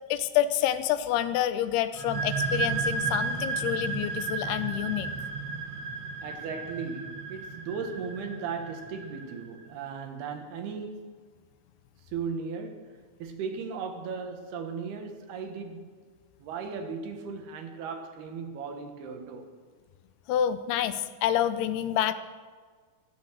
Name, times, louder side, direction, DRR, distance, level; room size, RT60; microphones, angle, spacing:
voice 1, 0.1-5.1 20.3-22.1, left 11 dB, 85° left, 2.8 m, -28 dB
sound 1, 1.9-9.4, right 4 dB, 45° right, 2.6 m, -33 dB
voice 2, 6.2-11.2 12.0-16.0 16.4-19.6, right 5 dB, 80° right, 3.4 m, -37 dB
14.5 x 13.5 x 6.4 m
omnidirectional pair, 4.5 m